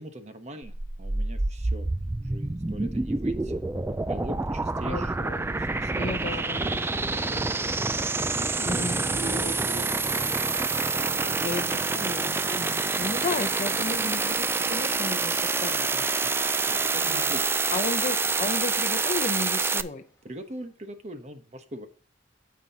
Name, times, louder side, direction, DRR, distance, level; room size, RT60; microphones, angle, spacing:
voice 1, 0.0-3.6 3.9-7.4 7.7-11.9 16.7-17.8 20.2-21.9, right 1 dB, 40° right, 1.1 m, -42 dB
sound 1, 0.6-19.8, right 3 dB, 15° right, 0.3 m, -27 dB
voice 2, 4.9-5.5 6.0-6.7 8.6-9.3 11.4-16.3 17.0-17.3 17.7-20.0, left 3 dB, 40° left, 0.6 m, -34 dB
sound 2, 6.8-15.6 15.9-17.3 17.5-17.7 18.0-18.1 19.1-19.3 20.4-20.6, equal, 20° left, 1.8 m, -43 dB
9.5 x 7.4 x 2.8 m
head